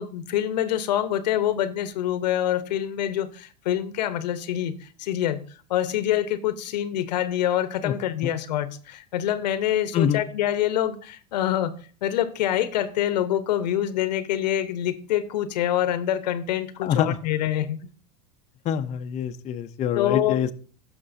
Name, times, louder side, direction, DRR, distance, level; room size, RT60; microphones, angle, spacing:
voice 1, 0.0-5.4 5.7-11.7 12.0-17.8 19.9-20.4, left 11 dB, 85° left, 0.9 m, -26 dB
voice 2, 16.8-17.2 18.7-20.5, left 9 dB, 35° left, 0.6 m, -25 dB
15.0 x 6.0 x 2.6 m
supercardioid pair, 120°, 21 cm